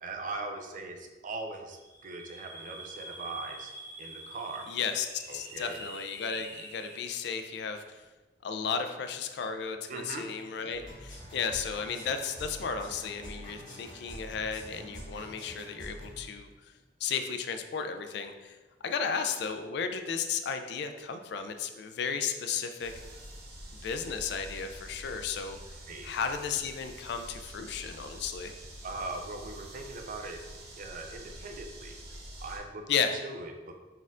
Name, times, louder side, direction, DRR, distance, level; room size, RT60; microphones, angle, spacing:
voice 1, 0.0-3.7 4.0-4.7 5.3-5.8 9.9-10.3 25.9-26.1 28.8-30.4 30.8-32.0 32.4-32.8 33.2-33.7, right 3 dB, 50° right, 4 dB, 0.5 m, -40 dB
sound 1, 1.7-7.1, right 1 dB, 15° right, 0.8 m, -46 dB
voice 2, 4.7-8.0 8.4-16.5 17.0-18.6 18.8-22.9 23.8-25.6 26.0-28.5 32.9-33.1, left 6 dB, 65° left, 7 dB, 0.3 m, -34 dB
sound 2, 10.7-16.3, equal, 25° left, 1.2 m, -46 dB
sound 3, 22.8-32.6, right 1 dB, 65° right, 0.9 m, -47 dB
4.3 x 3.7 x 2.4 m, 1.2 s
head